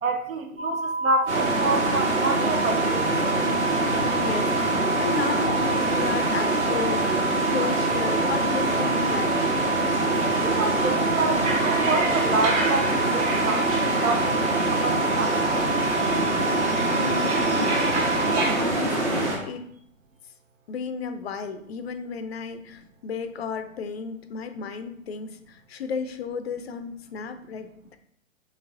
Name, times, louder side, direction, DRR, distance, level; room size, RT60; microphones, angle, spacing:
voice 1, 0.0-3.3 10.3-15.6, right 3 dB, 80° right, 5 dB, 0.8 m, -28 dB
sound 1, 0.6-18.5, right 3 dB, 15° right, 0.5 m, -29 dB
sound 2, 1.3-19.4, right 2 dB, 55° right, 1.2 m, -25 dB
voice 2, 4.2-9.6 16.9-18.1 18.6-19.7 20.7-28.0, left 6 dB, 50° left, 9 dB, 0.4 m, -34 dB
sound 3, 11.4-18.5, right 2 dB, 35° right, 0.9 m, -32 dB
4.0 x 3.3 x 2.5 m, 0.70 s
figure-of-eight pair, 120°, 41 cm